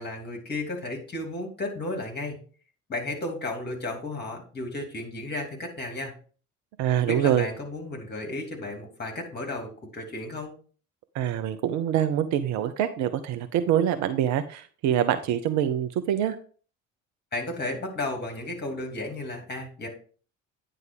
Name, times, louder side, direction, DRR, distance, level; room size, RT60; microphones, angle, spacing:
voice 1, 0.0-2.4 2.9-6.1 7.0-10.5 17.3-19.9, left 2 dB, 25° left, 2 dB, 2.6 m, -33 dB
voice 2, 6.8-7.5 11.1-16.4, right 10 dB, 45° right, 10 dB, 0.7 m, -25 dB
9.3 x 3.7 x 5.2 m, 0.42 s
figure-of-eight pair, 55°, 39 cm